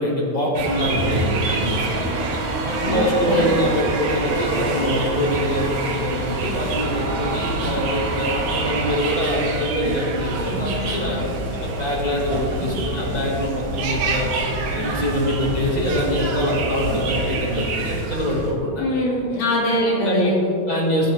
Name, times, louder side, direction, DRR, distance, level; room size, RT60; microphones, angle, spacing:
voice 1, 0.0-2.2 2.6-11.3 11.5-14.3 14.7-18.9 20.0-20.4 20.6-21.1, left 1 dB, 20° left, -3 dB, 1.1 m, -24 dB
sound 1, 0.5-18.5, right 2 dB, 85° right, 4.0 m, -25 dB
voice 2, 2.9-3.5 18.8-20.5, equal, 65° left, -4 dB, 4.7 m, -22 dB
23.5 x 10.0 x 3.7 m, 2.7 s
omnidirectional pair, 4.7 m